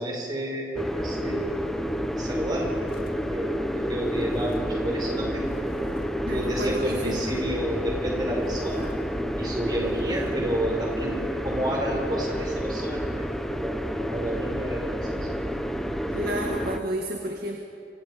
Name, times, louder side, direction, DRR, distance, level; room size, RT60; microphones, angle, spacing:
voice 1, 0.0-1.7 2.1-2.8 3.1-5.9 6.3-8.9 9.4-13.3 13.5-15.3, right 1 dB, 25° right, -1 dB, 5.4 m, -31 dB
sound 1, 0.8-16.8, equal, ahead, 0.9 m, -29 dB
sound 2, 2.9-6.1 6.4-7.6 8.0-8.1 8.4-9.0 9.4-9.6 9.9-10.3, left 1 dB, 55° left, 3.0 m, -49 dB
voice 2, 6.3-7.2 16.1-17.6, right 1 dB, 55° right, 1 dB, 2.0 m, -30 dB
27.0 x 25.5 x 5.2 m, 2.4 s
head